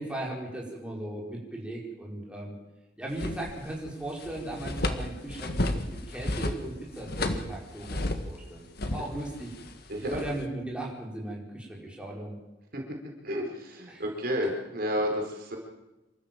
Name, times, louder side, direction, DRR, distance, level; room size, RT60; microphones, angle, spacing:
voice 1, 0.0-2.5 3.0-8.6 8.9-9.5 10.0-12.3 13.9-14.0, right 1 dB, 5° right, -4 dB, 5.0 m, -37 dB
sound 1, 3.1-3.9 4.2-8.4 8.8-10.4, left 1 dB, 55° left, 1.8 m, -32 dB
voice 2, 13.2-15.6, equal, 55° right, 1 dB, 4.5 m, -31 dB
27.0 x 13.5 x 7.7 m, 0.99 s
head